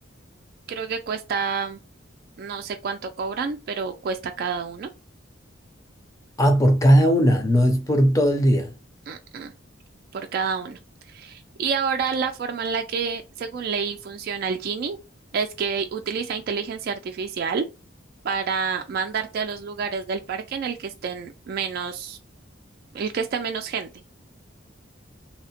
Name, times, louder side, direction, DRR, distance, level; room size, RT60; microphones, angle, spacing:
voice 1, 0.7-1.8 2.4-4.9 9.1-9.5 10.1-10.8 11.1-15.0 15.3-17.7 18.2-22.2 22.9-23.9, right 5 dB, 50° right, 0.3 m, -28 dB
voice 2, 6.4-8.7, equal, 15° left, 0.5 m, -18 dB
2.7 x 2.0 x 2.8 m
head